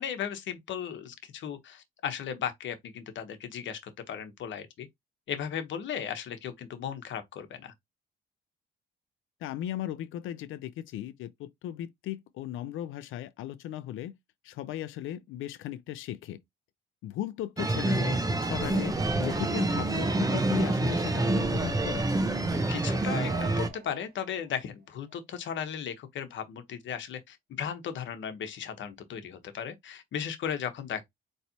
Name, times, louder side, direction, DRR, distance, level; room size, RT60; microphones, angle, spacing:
voice 1, 0.0-3.8 4.1-4.9 5.3-7.7 22.7-31.0, left 8 dB, 70° left, 1.1 m, -36 dB
voice 2, 9.4-14.1 14.4-16.4 17.0-22.0, left 12 dB, 85° left, 0.5 m, -37 dB
sound 1, 17.6-23.7, right 2 dB, 20° right, 0.9 m, -27 dB
sound 2, 22.5-24.6 25.1-25.2, right 7 dB, 50° right, 0.8 m, -43 dB
4.2 x 3.2 x 2.8 m
cardioid pair, 90°, 20 cm